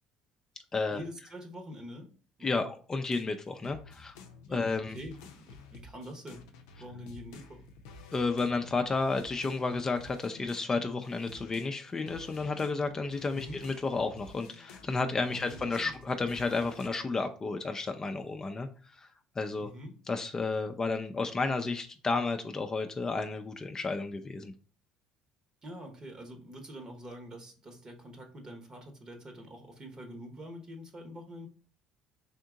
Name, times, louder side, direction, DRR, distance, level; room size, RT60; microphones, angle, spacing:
voice 1, 0.9-2.1 2.4-2.6 4.5-6.4 6.8-7.7 13.3-13.6 15.3-16.0 19.6-19.9 25.6-31.5, equal, 35° right, 4 dB, 1.0 m, -45 dB
voice 2, 2.4-4.2 4.5-5.0 8.1-19.1 19.4-19.7 20.1-24.5, left 3 dB, 25° left, 6 dB, 0.4 m, -32 dB
sound 1, 3.0-11.8 12.1-16.9, left 3 dB, 90° left, 0.5 m, -51 dB
3.6 x 2.7 x 3.6 m, 0.39 s
supercardioid pair, 75°, 2 cm